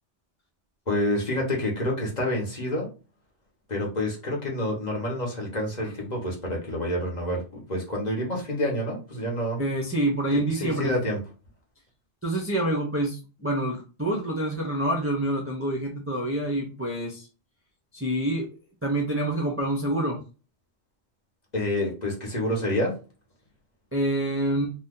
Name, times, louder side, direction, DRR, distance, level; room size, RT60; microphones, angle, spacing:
voice 1, 0.9-2.9 3.7-9.6 10.5-11.2 21.5-22.9, left 1 dB, 40° left, -1 dB, 1.0 m, -28 dB
voice 2, 9.6-10.9 12.2-17.3 17.9-18.5 18.8-20.2 23.9-24.7, right 1 dB, 15° right, -1 dB, 0.5 m, -27 dB
2.7 x 2.2 x 3.6 m, 0.33 s
omnidirectional pair, 1.2 m